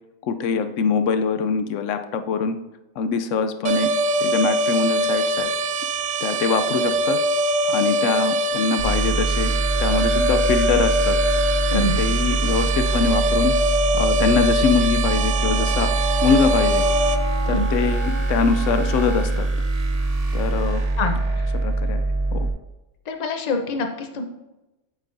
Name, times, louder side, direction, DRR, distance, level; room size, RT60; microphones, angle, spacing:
voice 1, 0.2-2.6 3.0-3.9 4.2-5.5 6.2-7.2 7.6-9.5 9.8-11.2 11.7-13.5 13.9-15.9 16.2-16.9 17.5-19.5 20.3-20.9 21.6-22.0 22.3-22.5, left 5 dB, 85° left, 8 dB, 0.9 m, -23 dB
sound 1, 3.6-17.2, right 1 dB, 65° right, 0.4 m, -23 dB
sound 2, 8.8-22.5, right 2 dB, 35° right, 0.8 m, -23 dB
voice 2, 11.7-12.0 17.5-17.6 21.0-21.2 23.1-24.3, left 2 dB, 40° left, 5 dB, 0.8 m, -25 dB
Wind instrument woodwind instrument, 15.0-19.3, right 3 dB, 80° right, 1.9 m, -33 dB
8.2 x 7.6 x 2.6 m, 0.98 s
omnidirectional pair, 1.3 m